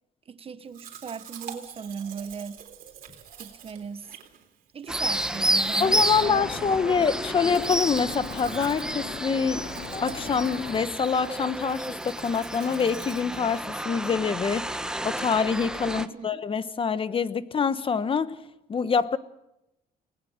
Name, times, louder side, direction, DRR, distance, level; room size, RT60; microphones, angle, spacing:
voice 1, 0.3-2.6 3.4-4.2 4.7-7.2 15.9-16.4, right 6 dB, 35° right, 1.5 m, -38 dB
Domestic sounds home sounds, 0.7-14.1, right 9 dB, 60° right, 3.7 m, -47 dB
sound 1, 4.9-16.1, right 1 dB, 5° right, 1.2 m, -31 dB
sound 2, 5.8-10.8, left 4 dB, 55° left, 5.6 m, -39 dB
voice 2, 5.8-9.7 9.9-18.4 18.7-19.2, left 6 dB, 30° left, 1.2 m, -26 dB
29.5 x 19.5 x 6.6 m
cardioid pair, 110°, 17 cm